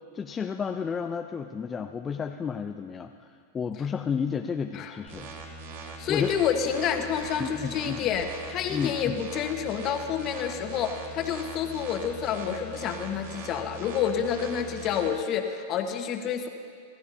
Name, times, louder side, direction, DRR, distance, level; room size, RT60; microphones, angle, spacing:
voice 1, 0.1-5.3 5.8-6.3 7.4-8.1 8.7-9.2, left 6 dB, 20° left, 5 dB, 0.6 m, -32 dB
sound 1, 5.1-15.1, right 3 dB, 70° right, 2.6 m, -41 dB
voice 2, 6.0-16.5, left 8 dB, 40° left, 4 dB, 1.5 m, -29 dB
26.5 x 14.5 x 2.8 m, 2.2 s
hypercardioid pair, 115°, 0 cm